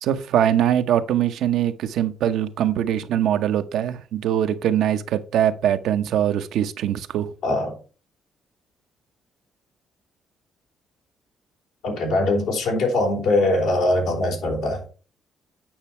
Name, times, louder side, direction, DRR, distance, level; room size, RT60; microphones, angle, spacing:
voice 1, 0.0-7.3, right 10 dB, 80° right, 0.8 m, -22 dB
voice 2, 11.8-14.8, left 2 dB, 90° left, 3.6 m, -22 dB
8.9 x 5.7 x 4.4 m
cardioid pair, 90°, 0 cm